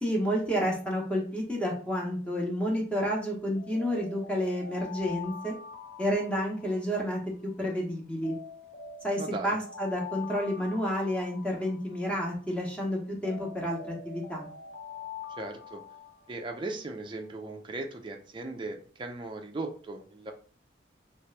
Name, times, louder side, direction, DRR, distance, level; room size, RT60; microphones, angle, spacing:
voice 1, 0.0-5.5 6.0-8.3 9.0-14.5, equal, 5° left, -2 dB, 0.9 m, -30 dB
Alarm, 3.5-7.7 8.2-12.7 13.2-17.0, left 6 dB, 40° left, 0.7 m, -45 dB
voice 2, 9.2-9.6 15.4-15.8 16.3-20.3, right 2 dB, 25° right, 3 dB, 0.4 m, -38 dB
3.3 x 3.0 x 3.2 m, 0.42 s
head